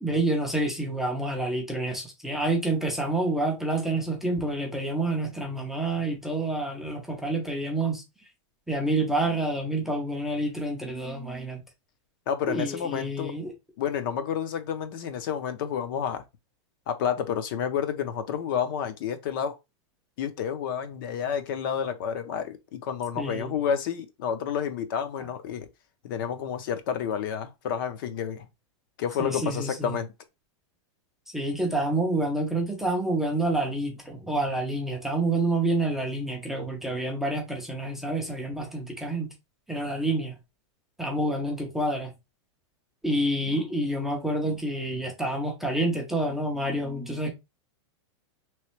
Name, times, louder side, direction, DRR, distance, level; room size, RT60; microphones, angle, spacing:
voice 1, 0.0-8.0 8.7-11.6 12.5-13.5 23.2-23.5 29.2-30.0 31.3-39.3 39.7-40.3 41.0-42.1 43.0-47.3, right 2 dB, ahead, 0.4 m, -28 dB
voice 2, 12.3-13.3 13.8-16.2 16.9-19.6 20.2-25.7 26.0-28.5 29.0-30.1, left 8 dB, 45° left, 0.6 m, -30 dB
3.2 x 3.1 x 3.0 m
supercardioid pair, 170°, 15 cm